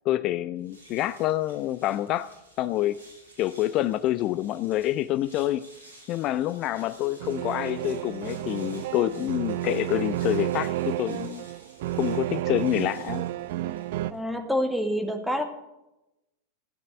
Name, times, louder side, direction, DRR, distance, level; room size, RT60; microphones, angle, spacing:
voice 1, 0.1-2.3 2.6-3.0 3.4-5.7 6.1-11.4 12.0-13.2, left 14 dB, 35° left, 15 dB, 0.4 m, -27 dB
sound 1, 0.5-14.2, right 1 dB, 75° right, 5.2 m, -54 dB
sound 2, 7.2-14.1, right 14 dB, 50° right, 0.6 m, -31 dB
voice 2, 14.1-15.4, equal, ahead, 4 dB, 2.1 m, -27 dB
15.0 x 9.3 x 8.0 m, 0.93 s
figure-of-eight pair, 90°, 0 cm